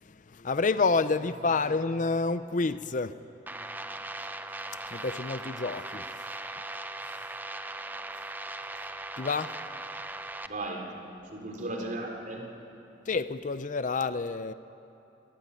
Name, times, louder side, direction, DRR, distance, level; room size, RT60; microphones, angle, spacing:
voice 1, 0.4-3.1 4.9-6.0 9.2-9.5 13.1-14.5, left 4 dB, 45° left, 0.6 m, -28 dB
sound 1, 3.5-10.5, right 2 dB, 10° right, 0.7 m, -39 dB
voice 2, 10.4-12.5, right 2 dB, 45° right, 3.9 m, -36 dB
26.5 x 17.0 x 10.0 m
head